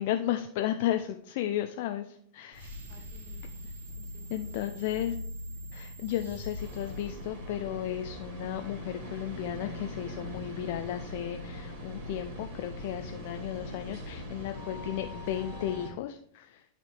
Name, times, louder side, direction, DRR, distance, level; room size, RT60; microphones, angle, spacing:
voice 1, 0.0-2.7 4.3-5.2 5.7-16.7, left 12 dB, 50° left, 7 dB, 0.4 m, -34 dB
sound 1, 2.5-7.9, left 1 dB, 60° right, 2.1 m, -42 dB
voice 2, 2.9-5.0, left 2 dB, 30° right, -1 dB, 2.6 m, -59 dB
sound 2, 6.6-15.9, left 1 dB, 45° right, 2.8 m, -41 dB
11.5 x 4.2 x 3.3 m, 0.65 s
figure-of-eight pair, 90°, 0 cm